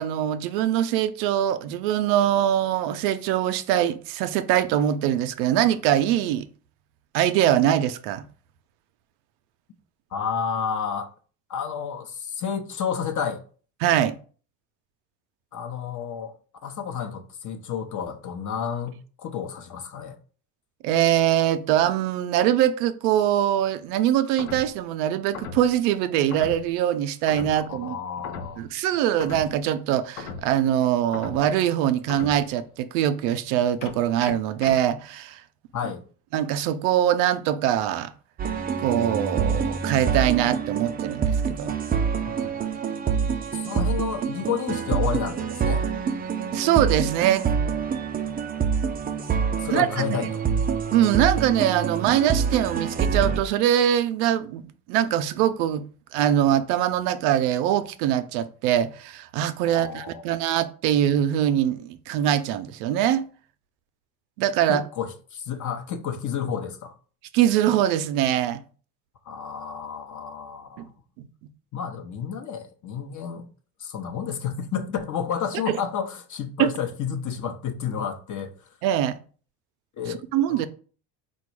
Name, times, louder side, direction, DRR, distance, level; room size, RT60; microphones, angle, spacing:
voice 1, 0.0-6.5 7.1-8.2 13.8-14.2 20.8-28.0 28.6-35.4 36.3-38.1 38.8-41.7 46.5-47.5 49.7-50.2 50.9-55.8 56.1-63.2 64.4-64.8 67.3-68.6 70.8-70.9 71.2-71.3 75.7-75.8 76.6-76.7 78.8-79.2 80.1-80.7, right 11 dB, 80° right, 0.6 m, -23 dB
voice 2, 10.1-11.1 11.5-13.4 15.5-16.3 16.6-20.2 27.7-28.7 35.7-36.0 42.2-42.6 43.5-45.8 49.6-50.4 59.7-60.2 64.7-66.9 69.2-70.9 71.7-73.5 73.8-78.5 80.0-80.7, left 7 dB, 40° left, 0.8 m, -31 dB
sound 1, 24.4-24.8 25.3-25.8 26.3-26.7 27.3-27.7 28.2-28.6 29.2-29.6 30.2-30.6 31.1-31.6 32.1-32.5 33.8-34.8, left 5 dB, 80° left, 0.8 m, -37 dB
sound 2, 38.4-53.4, right 6 dB, 20° right, 0.4 m, -26 dB
4.1 x 2.3 x 4.6 m
hypercardioid pair, 75°, 48 cm